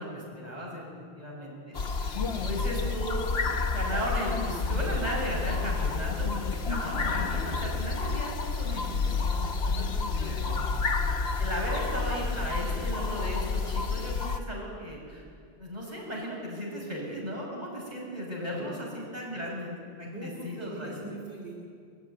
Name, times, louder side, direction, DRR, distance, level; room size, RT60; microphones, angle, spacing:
voice 1, 0.0-3.2 3.5-10.4 11.4-15.3 15.6-21.0, equal, 45° right, -3 dB, 6.9 m, -36 dB
sound 1, 1.7-14.4, left 4 dB, 80° left, 1.2 m, -30 dB
voice 2, 2.2-2.8 10.2-10.8 18.5-18.8 20.0-21.5, right 2 dB, 85° right, -2 dB, 2.9 m, -42 dB
22.5 x 14.0 x 9.6 m, 2.2 s
omnidirectional pair, 1.0 m